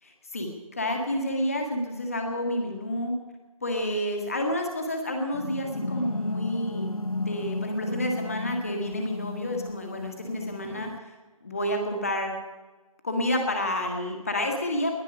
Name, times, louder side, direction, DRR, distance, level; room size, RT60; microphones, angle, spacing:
voice 1, 0.0-3.2 3.6-11.1 11.4-12.4 13.0-15.0, left 1 dB, 25° left, 3 dB, 1.7 m, -29 dB
sound 1, 5.3-11.0, left 2 dB, 90° left, 1.0 m, -34 dB
20.0 x 7.3 x 9.9 m, 1.2 s
figure-of-eight pair, 170°, 18 cm